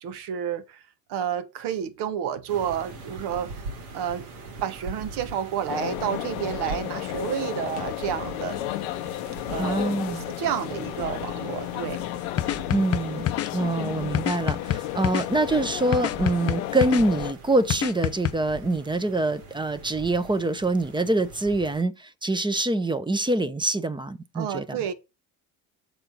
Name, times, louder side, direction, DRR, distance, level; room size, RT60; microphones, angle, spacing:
voice 1, 0.0-0.8 1.1-3.5 3.9-4.3 4.6-8.7 9.5-12.0 24.3-24.9, right 9 dB, 65° right, 1.2 m, -30 dB
sound 1, 2.5-21.8, right 3 dB, 85° right, 2.0 m, -42 dB
sound 2, 5.7-17.3, left 16 dB, 85° left, 0.8 m, -33 dB
voice 2, 9.6-10.3 12.7-13.3 13.5-24.8, right 2 dB, 10° right, 0.8 m, -25 dB
sound 3, 12.4-13.5 14.1-15.3 15.9-17.0 17.7-18.3, left 11 dB, 35° left, 0.6 m, -26 dB
6.7 x 4.3 x 5.5 m
supercardioid pair, 85°, 43 cm